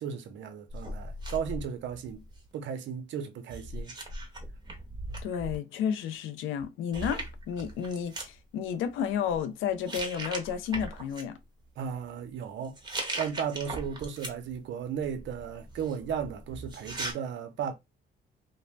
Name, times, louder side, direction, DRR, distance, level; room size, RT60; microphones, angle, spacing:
voice 1, 0.0-2.2 2.5-3.9 11.8-12.8 13.2-17.7, right 7 dB, 70° right, 0.7 m, -35 dB
sound 1, 0.7-2.5 3.5-5.6 6.6-6.7 6.9-8.3 9.1-9.4 9.8-11.2 12.6-14.6 15.0-17.1, right 2 dB, 20° right, 0.9 m, -39 dB
voice 2, 5.2-11.4, left 8 dB, 90° left, 0.5 m, -32 dB
2.7 x 2.0 x 3.1 m
cardioid pair, 90°, 20 cm